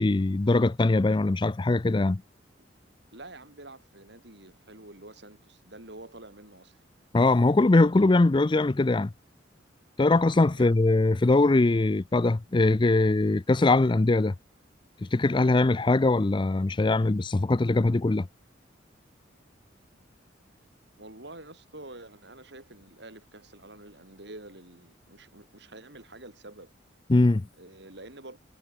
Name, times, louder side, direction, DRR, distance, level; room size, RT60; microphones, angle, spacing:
voice 1, 0.0-2.2 7.1-9.1 10.0-14.3 15.0-18.3 27.1-27.5, left 2 dB, 25° left, 0.5 m, -22 dB
voice 2, 3.1-6.8 10.5-10.7 21.0-26.7 27.6-28.4, right 2 dB, 65° right, 7.1 m, -47 dB
head